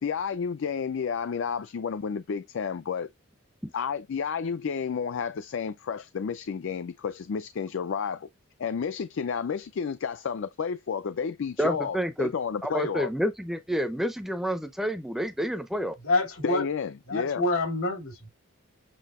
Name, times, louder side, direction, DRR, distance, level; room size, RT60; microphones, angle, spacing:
voice 1, 0.0-3.1 3.7-8.3 8.6-13.1 16.4-17.4, left 6 dB, 60° left, 0.4 m, -31 dB
voice 2, 11.6-12.3 12.6-15.9, equal, ahead, 0.5 m, -29 dB
voice 3, 16.0-16.6 17.1-18.3, left 2 dB, 85° left, 2.7 m, -27 dB
7.6 x 2.7 x 2.5 m
head